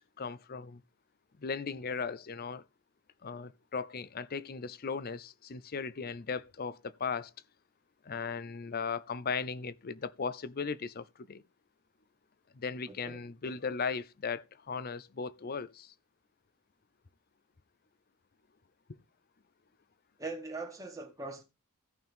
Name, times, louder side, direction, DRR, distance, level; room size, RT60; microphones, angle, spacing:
voice 1, 0.2-0.8 1.4-2.6 3.2-7.3 8.0-11.4 12.5-15.9, left 5 dB, 45° left, 0.6 m, -37 dB
voice 2, 20.2-21.4, right 3 dB, 15° right, 1.9 m, -40 dB
16.5 x 5.7 x 3.5 m
head